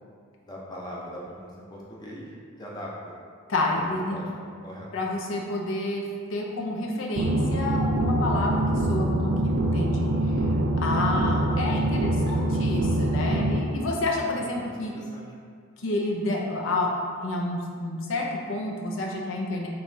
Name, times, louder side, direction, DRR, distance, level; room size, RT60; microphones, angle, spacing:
voice 1, 0.4-2.3 2.6-2.9 3.7-4.9 11.1-11.8 14.3-15.3, equal, 20° left, -4 dB, 0.6 m, -41 dB
voice 2, 3.5-4.2 4.9-6.0 6.3-10.4 10.8-14.9 15.8-16.9 17.2-19.7, left 2 dB, 65° left, -1 dB, 0.5 m, -29 dB
sound 1, 7.2-13.6, right 1 dB, 60° right, 0.4 m, -24 dB
5.4 x 3.0 x 2.7 m, 2.1 s
head